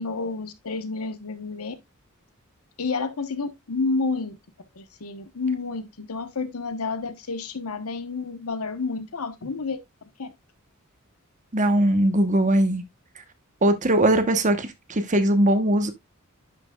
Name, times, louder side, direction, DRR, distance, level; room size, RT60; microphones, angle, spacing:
voice 1, 0.0-1.7 2.8-4.4 4.8-9.8 10.2-10.3, left 4 dB, 90° left, 1.1 m, -30 dB
voice 2, 11.5-12.8 13.6-15.9, right 1 dB, 35° right, 1.1 m, -20 dB
10.5 x 6.0 x 2.3 m
head